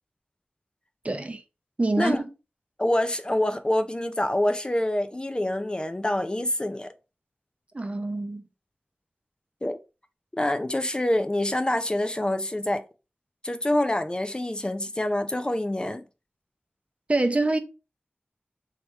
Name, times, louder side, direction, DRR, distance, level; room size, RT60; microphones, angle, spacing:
voice 1, 1.0-1.4 1.8-2.3 7.7-8.4 17.1-17.6, right 2 dB, 35° right, 0.6 m, -25 dB
voice 2, 2.8-6.9 9.6-9.8 10.3-12.8 13.4-16.0, left 1 dB, 25° left, 0.4 m, -26 dB
3.4 x 2.8 x 4.4 m
wide cardioid pair, 70°, 4 cm